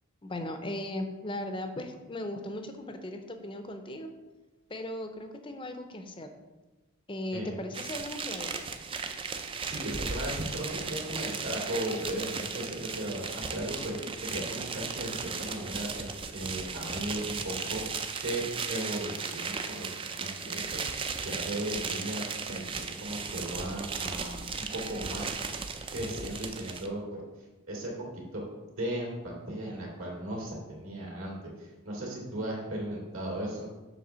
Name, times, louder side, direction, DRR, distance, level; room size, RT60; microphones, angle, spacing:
voice 1, 0.2-4.1 4.7-6.3 7.1-8.5, left 1 dB, 25° left, 6 dB, 0.6 m, -37 dB
sound 1, 7.7-26.9, right 5 dB, 25° right, 0.4 m, -36 dB
voice 2, 9.6-13.9 14.2-17.8 18.2-18.4 18.7-25.3 25.9-28.4 28.8-33.7, right 1 dB, 70° right, -2 dB, 2.5 m, -36 dB
7.2 x 3.4 x 6.2 m, 1.2 s
head